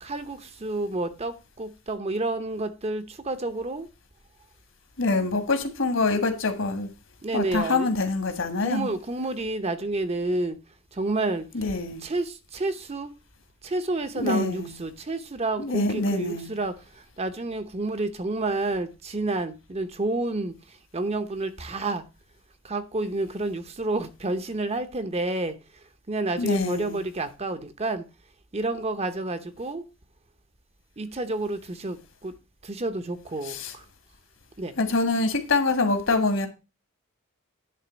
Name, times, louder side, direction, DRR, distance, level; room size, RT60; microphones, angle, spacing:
voice 1, 0.0-3.9 7.2-7.9 8.6-10.6 10.9-11.4 12.0-13.1 13.6-16.8 17.2-20.5 20.9-22.0 22.6-25.5 26.1-28.0 28.5-29.8 31.0-32.3 32.6-33.8 34.6-34.7, right 2 dB, 30° right, 0.8 m, -29 dB
voice 2, 5.0-6.9 7.3-8.9 11.5-12.0 14.2-14.7 15.6-16.5 26.4-27.0 33.4-33.7 34.8-36.5, left 3 dB, 60° left, 1.6 m, -25 dB
10.0 x 3.8 x 6.2 m
head